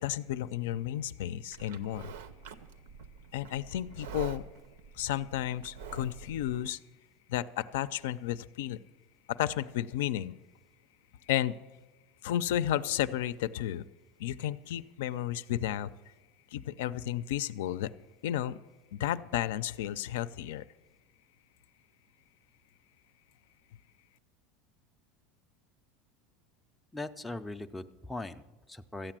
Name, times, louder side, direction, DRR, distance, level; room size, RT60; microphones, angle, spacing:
voice 1, 0.0-2.1 3.3-4.4 4.9-6.8 7.3-8.8 9.3-10.3 11.3-11.6 12.2-13.9 14.2-15.9 16.5-17.9 18.2-18.6 18.9-20.6, left 12 dB, 80° left, 15 dB, 0.5 m, -32 dB
Livestock farm animals working animals, 1.5-6.6, right 6 dB, 85° right, 0.8 m, -46 dB
voice 2, 26.9-29.1, left 2 dB, 5° left, 6 dB, 0.4 m, -40 dB
13.5 x 8.9 x 7.5 m, 1.1 s
supercardioid pair, 170°, 0 cm